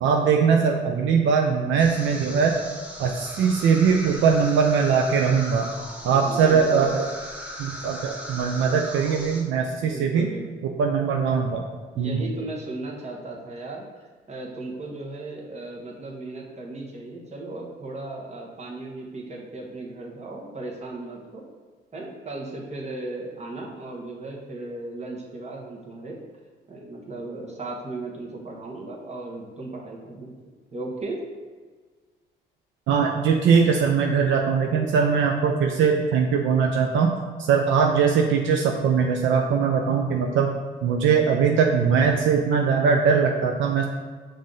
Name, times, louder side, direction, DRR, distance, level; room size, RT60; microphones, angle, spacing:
voice 1, 0.0-2.5 3.0-5.7 6.0-7.1 7.6-10.3 10.8-11.6 12.0-12.2 32.9-37.1 37.4-40.5 40.8-43.9, right 6 dB, 75° right, 1 dB, 0.4 m, -21 dB
sound 1, 1.8-9.4, equal, 5° right, 1.0 m, -38 dB
voice 2, 6.0-6.9 9.8-10.7 11.9-13.8 14.3-21.4 21.9-26.2 26.7-30.3 30.7-31.2, right 2 dB, 35° right, -1 dB, 1.0 m, -36 dB
5.5 x 2.6 x 3.8 m, 1.5 s
cardioid pair, 90°, 20 cm